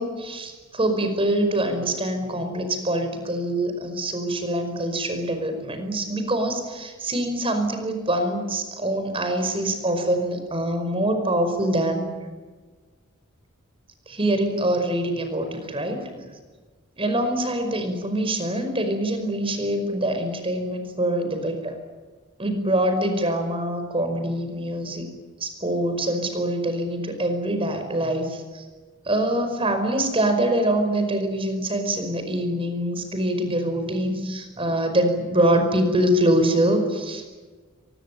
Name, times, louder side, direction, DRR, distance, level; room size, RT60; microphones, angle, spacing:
voice 1, 0.0-12.1 14.1-16.3 17.0-21.7 22.4-25.1 25.4-28.6 29.0-37.2, right 1 dB, 25° right, 7 dB, 5.2 m, -24 dB
23.5 x 21.0 x 9.3 m, 1.4 s
head